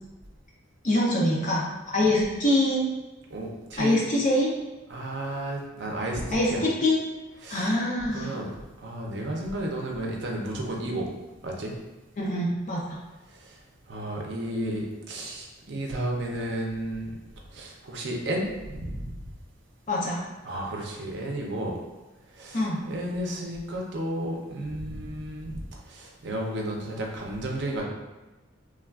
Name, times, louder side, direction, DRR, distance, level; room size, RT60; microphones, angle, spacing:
voice 1, 0.8-2.9 3.8-4.5 6.3-7.0 7.5-8.4 12.2-13.0 19.9-20.2 22.5-22.8, left 1 dB, 40° left, -4 dB, 0.4 m, -24 dB
voice 2, 3.3-4.0 4.9-6.2 6.5-6.6 7.4-7.8 8.1-8.5 8.8-11.1 11.4-11.7 13.4-13.6 13.9-17.1 17.5-19.0 20.4-21.8 22.4-25.6 25.9-27.8, right 1 dB, 60° right, -1 dB, 0.5 m, -32 dB
3.3 x 2.3 x 2.3 m, 1.1 s
head